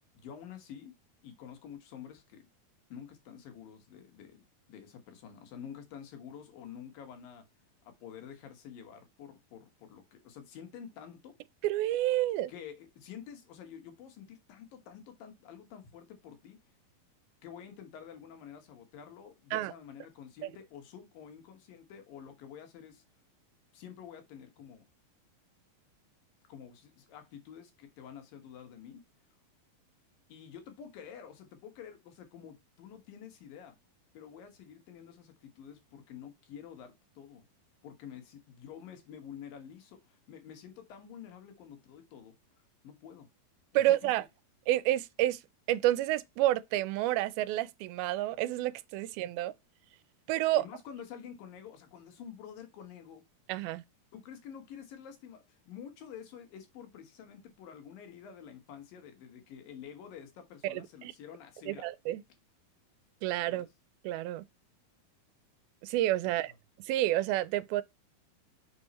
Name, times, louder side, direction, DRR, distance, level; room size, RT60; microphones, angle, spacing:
voice 1, 0.1-1.0 1.2-2.5 2.9-7.4 7.8-11.3 12.5-16.6 17.4-23.0 23.7-24.8 26.5-29.0 30.3-33.8 34.1-37.4 37.8-42.3 42.8-43.3 44.0-44.1 50.5-53.2 54.1-61.9 63.5-63.7 66.2-66.3, left 8 dB, 70° left, 3.1 m, -49 dB
voice 2, 11.6-12.5 19.5-19.7 20.4-20.5 43.7-44.3 44.7-45.4 45.7-49.5 50.3-50.7 53.5-53.8 60.6-61.1 61.7-62.2 63.2-63.7 64.0-64.4 65.8-66.5 66.8-67.8, right 15 dB, 85° right, 2.4 m, -29 dB
6.4 x 5.5 x 4.1 m
omnidirectional pair, 4.3 m